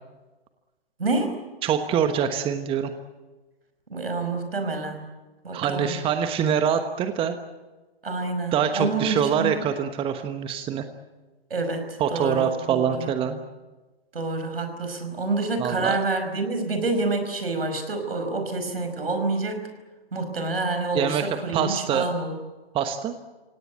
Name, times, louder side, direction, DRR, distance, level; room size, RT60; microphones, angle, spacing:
voice 1, 1.0-1.4 3.9-5.0 5.4-5.9 8.0-9.6 11.5-13.1 14.1-19.6 20.1-22.3, right 3 dB, 75° right, 6 dB, 5.2 m, -28 dB
voice 2, 1.6-2.9 5.5-7.4 8.5-10.8 12.0-13.4 15.6-16.0 20.9-22.1 22.7-23.2, right 8 dB, 20° right, 8 dB, 1.2 m, -25 dB
27.0 x 17.5 x 9.3 m, 1.2 s
figure-of-eight pair, 115°, 30 cm